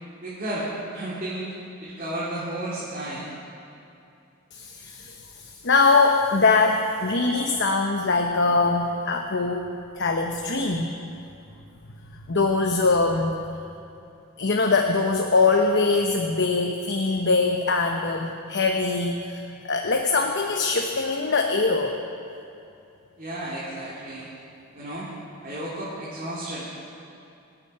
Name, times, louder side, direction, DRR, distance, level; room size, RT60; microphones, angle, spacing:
voice 1, 0.2-3.3 23.2-24.3 24.7-25.1 25.4-26.7, right 1 dB, 40° right, -9 dB, 3.2 m, -33 dB
voice 2, 4.5-9.7 10.0-10.9 12.3-13.4 14.4-22.0, left 3 dB, 55° left, 3 dB, 0.9 m, -22 dB
25.5 x 8.6 x 5.8 m, 2.7 s
head